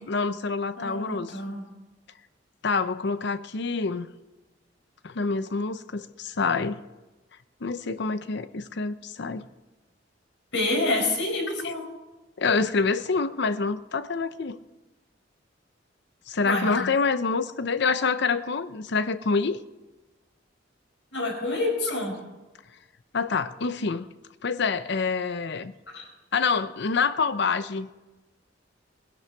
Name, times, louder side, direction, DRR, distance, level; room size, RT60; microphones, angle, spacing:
voice 1, 0.1-1.3 2.6-4.1 5.0-6.8 7.6-9.5 11.6-11.7 12.4-14.6 16.3-19.6 23.1-24.1 24.4-25.7 26.3-27.9, left 4 dB, 65° left, 13 dB, 0.7 m, -26 dB
voice 2, 0.8-1.6 10.5-11.8 16.4-16.7 21.1-22.1 25.9-26.0, left 2 dB, 80° left, 1 dB, 4.9 m, -27 dB
19.5 x 11.5 x 4.6 m, 1.1 s
head